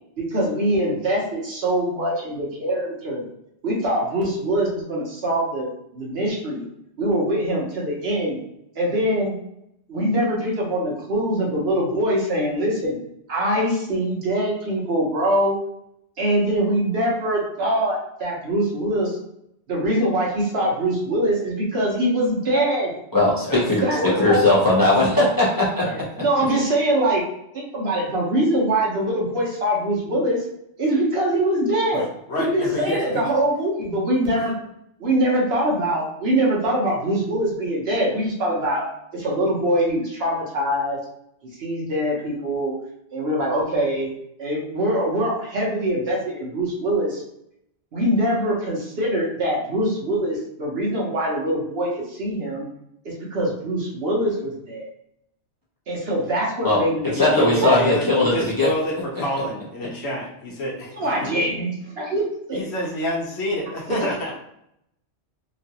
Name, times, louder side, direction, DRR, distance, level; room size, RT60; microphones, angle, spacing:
voice 1, 0.2-3.2 3.6-6.6 7.0-8.4 8.7-9.3 9.9-13.0 13.3-15.6 16.2-19.2 19.7-22.9 23.8-24.4 26.2-27.2 27.5-30.4 30.8-32.0 32.4-34.5 35.0-38.8 39.1-41.0 41.6-42.7 43.1-44.1 44.4-47.2 47.9-52.7 53.0-54.9 55.9-57.7 61.0-61.7 62.0-62.2 62.5-62.6 63.9-64.0, right 1 dB, 60° right, -3 dB, 1.1 m, -23 dB
voice 2, 23.1-23.8 24.2-25.8 56.6-56.8 57.1-58.7, left 2 dB, 25° left, -6 dB, 0.6 m, -18 dB
voice 3, 24.0-24.5 25.8-26.0 31.9-33.2 34.4-34.5 57.1-61.3 62.5-64.3, equal, 70° left, -2 dB, 1.0 m, -28 dB
3.0 x 2.4 x 2.8 m, 0.77 s
omnidirectional pair, 1.2 m